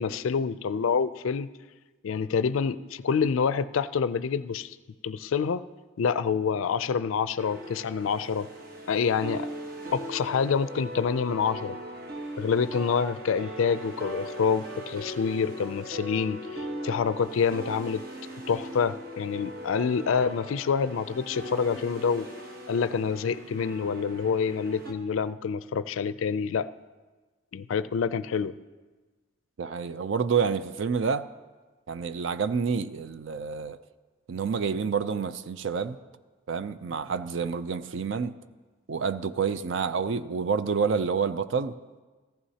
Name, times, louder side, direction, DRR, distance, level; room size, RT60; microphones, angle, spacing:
voice 1, 0.0-1.5 2.0-4.8 5.0-5.6 6.0-8.5 8.9-9.5 9.9-11.8 12.4-18.0 18.5-22.3 22.7-26.7 27.5-28.6, left 6 dB, 75° left, 15 dB, 0.4 m, -27 dB
sound 1, 7.4-24.9, equal, 45° right, 1.1 m, -39 dB
voice 2, 29.6-31.3 31.9-33.8 34.3-36.0 36.5-38.3 38.9-41.7, right 6 dB, 65° right, 12 dB, 0.4 m, -28 dB
15.0 x 14.5 x 2.8 m, 1.3 s
head